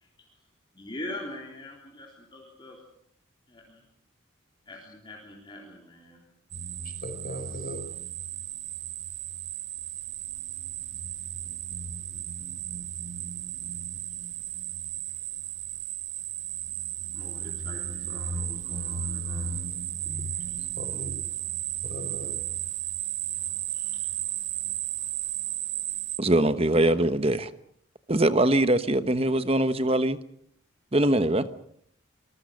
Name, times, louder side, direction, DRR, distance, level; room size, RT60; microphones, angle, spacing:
voice 1, 0.7-2.8 3.5-3.8 4.7-6.2 17.1-19.6 20.1-20.5 23.7-23.9, left 1 dB, 25° left, -1 dB, 3.7 m, -43 dB
sound 1, 6.5-26.2, right 10 dB, 55° right, 1.0 m, -34 dB
voice 2, 6.8-7.8 20.6-21.1 21.8-22.3, equal, 45° left, 4 dB, 5.8 m, -39 dB
voice 3, 26.2-27.5 28.1-30.2 30.9-31.5, right 1 dB, 30° right, 12 dB, 1.1 m, -22 dB
26.0 x 21.0 x 6.5 m, 0.66 s
head